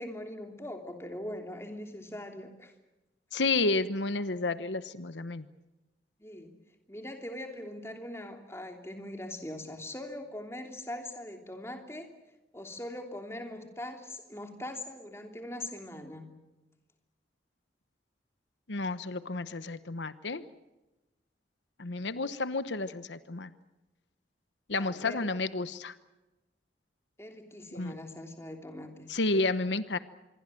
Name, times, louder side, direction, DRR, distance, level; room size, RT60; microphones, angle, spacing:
voice 1, 0.0-2.7 6.2-6.5 6.9-12.1 12.5-16.3 24.7-25.3 27.2-29.1, left 1 dB, 15° left, 4 dB, 3.0 m, -41 dB
voice 2, 3.3-5.5 18.7-20.4 21.8-23.5 24.7-25.9 27.7-27.9 29.1-30.0, left 3 dB, 85° left, 13 dB, 1.1 m, -31 dB
26.5 x 23.0 x 7.7 m, 1.1 s
head